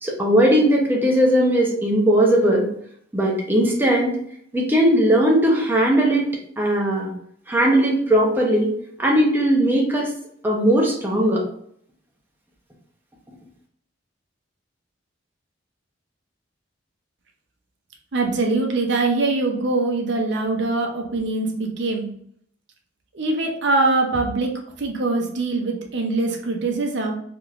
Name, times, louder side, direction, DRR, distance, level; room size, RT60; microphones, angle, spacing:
voice 1, 0.0-2.7 3.1-4.2 4.5-6.3 6.6-7.1 7.5-8.7 9.0-10.1 10.4-11.4, right 1 dB, 10° right, -2 dB, 0.7 m, -18 dB
voice 2, 18.1-22.1 23.1-24.5 24.8-27.1, right 3 dB, 60° right, 1 dB, 0.6 m, -23 dB
3.6 x 2.9 x 2.4 m, 0.65 s
head